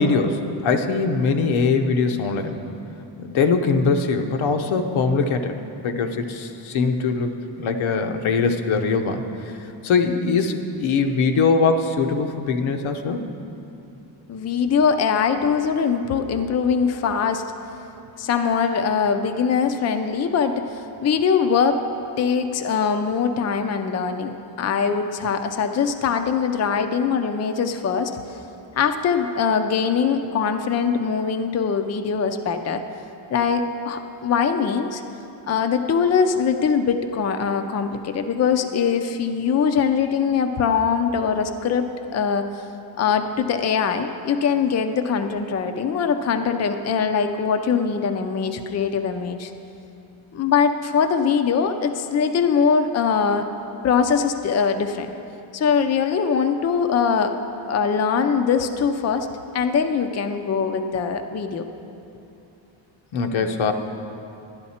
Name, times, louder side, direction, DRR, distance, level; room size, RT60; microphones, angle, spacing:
voice 1, 0.0-2.6 3.2-5.6 5.8-9.2 9.8-13.2 63.1-63.7, left 4 dB, 85° left, 5 dB, 0.9 m, -22 dB
voice 2, 14.3-17.4 18.2-21.8 22.2-28.4 28.8-32.8 33.3-35.0 35.5-41.8 42.1-42.6 43.0-49.5 50.3-53.5 53.8-55.1 55.5-57.3 57.6-59.3 59.5-61.7, left 6 dB, 35° left, 7 dB, 0.5 m, -22 dB
12.0 x 10.5 x 4.2 m, 2.8 s
wide cardioid pair, 140°, 47 cm